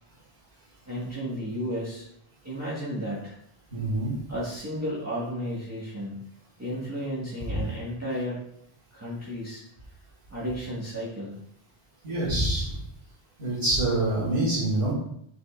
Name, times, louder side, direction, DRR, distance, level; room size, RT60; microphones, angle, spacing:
voice 1, 0.9-2.1 2.4-3.4 4.3-6.2 6.6-8.4 8.9-9.6 10.3-11.4, equal, 15° right, -9 dB, 1.8 m, -33 dB
voice 2, 3.7-4.1 7.5-7.6 12.0-12.8 13.4-14.9, right 1 dB, 85° right, -7 dB, 2.7 m, -26 dB
9.6 x 5.4 x 2.5 m, 0.71 s
omnidirectional pair, 1.0 m